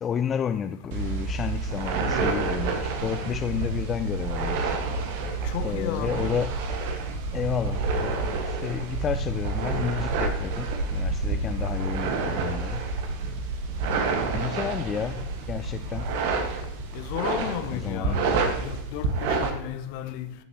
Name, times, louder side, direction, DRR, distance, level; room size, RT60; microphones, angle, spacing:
voice 1, 0.0-4.8 5.6-6.5 7.3-12.8 14.3-16.1 17.7-18.2, left 8 dB, 25° left, 0.4 m, -31 dB
sound 1, 0.9-19.5, right 3 dB, 50° right, 1.5 m, -28 dB
voice 2, 5.4-6.3 16.9-18.2 18.6-20.3, left 10 dB, 45° left, 0.9 m, -33 dB
16.0 x 8.0 x 2.9 m
figure-of-eight pair, 90°, 0 cm